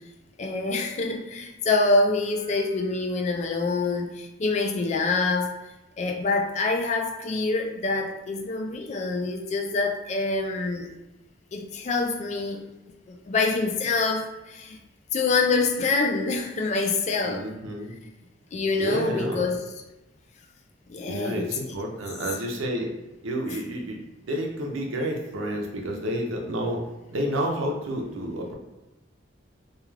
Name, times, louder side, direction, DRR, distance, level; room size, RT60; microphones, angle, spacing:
voice 1, 0.4-5.6 6.0-10.9 11.5-12.7 13.1-14.8 15.1-17.5 18.5-19.6 20.9-21.6 23.5-23.6, left 3 dB, 35° left, 3 dB, 0.3 m, -26 dB
voice 2, 17.2-17.9 18.8-19.5 21.1-22.9 23.2-26.8 27.1-28.5, equal, 85° right, 1 dB, 0.6 m, -30 dB
2.3 x 2.3 x 3.1 m, 1.0 s
head